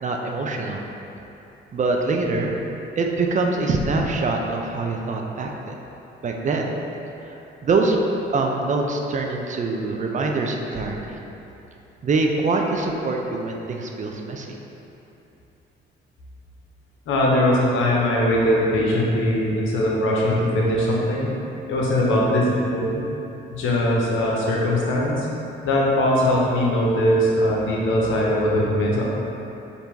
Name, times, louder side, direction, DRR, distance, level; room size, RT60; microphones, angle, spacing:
voice 1, 0.0-0.8 1.7-2.6 3.0-5.7 6.2-6.7 7.3-7.4 7.6-8.0 8.3-11.2 12.0-14.6, right 3 dB, 40° right, 1 dB, 0.4 m, -24 dB
voice 2, 17.1-21.3 21.7-23.0 23.5-25.3 25.6-29.0, left 1 dB, 80° left, -3 dB, 0.8 m, -21 dB
3.4 x 2.6 x 4.5 m, 2.9 s
cardioid pair, 90°, 20 cm